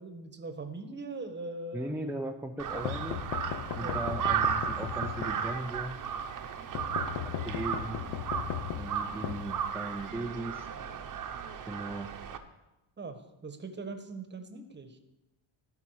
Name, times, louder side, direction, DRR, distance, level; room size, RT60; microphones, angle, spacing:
voice 1, 0.0-2.0 3.8-4.0 13.0-15.0, right 3 dB, 25° right, 8 dB, 1.1 m, -41 dB
voice 2, 1.7-3.2 3.7-6.0 7.2-8.0 8.8-10.7 11.7-12.2, right 2 dB, 5° right, 3 dB, 0.3 m, -38 dB
Crow, 2.6-12.4, right 7 dB, 40° right, 0.9 m, -35 dB
sound 1, 2.9-5.8 6.7-10.1, left 12 dB, 75° left, 0.7 m, -37 dB
16.0 x 5.5 x 4.8 m, 0.98 s
cardioid pair, 120°, 47 cm